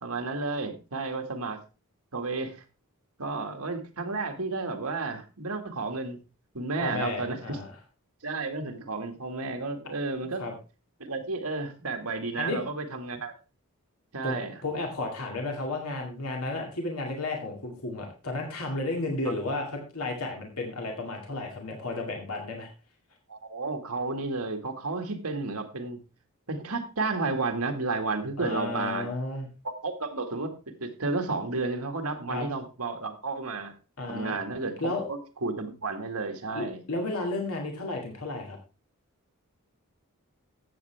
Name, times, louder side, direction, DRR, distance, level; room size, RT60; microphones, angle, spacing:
voice 1, 0.0-1.6 2.1-2.6 3.2-6.2 6.5-7.6 8.2-10.4 11.0-13.3 14.1-14.6 19.3-19.4 23.3-26.0 26.5-29.1 29.6-30.5 30.8-33.7 34.1-34.8 35.1-36.8, right 3 dB, 85° right, 5 dB, 1.9 m, -32 dB
voice 2, 6.8-7.7 10.4-10.5 12.4-12.6 14.2-22.7 28.4-29.5 32.3-32.4 34.0-34.3 34.8-35.1 36.5-38.6, left 2 dB, 80° left, 1 dB, 2.3 m, -33 dB
13.5 x 8.3 x 3.4 m, 0.31 s
head